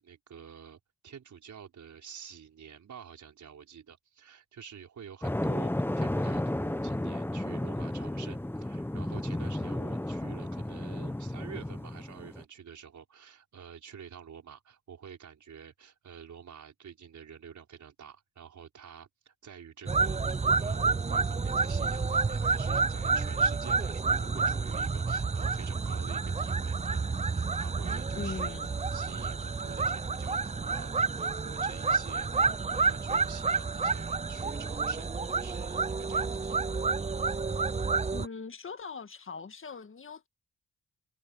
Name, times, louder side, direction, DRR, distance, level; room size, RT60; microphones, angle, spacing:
voice 1, 0.0-5.7 6.0-27.0 27.3-28.6 28.9-36.8, right 7 dB, 70° right, 5.2 m, -49 dB
sound 1, 5.2-12.4, left 1 dB, 5° left, 1.2 m, -33 dB
sound 2, 19.9-38.3, right 4 dB, 20° right, 0.7 m, -29 dB
voice 2, 28.2-28.7 38.1-40.3, left 5 dB, 40° left, 1.8 m, -41 dB
cardioid pair, 60°, 31 cm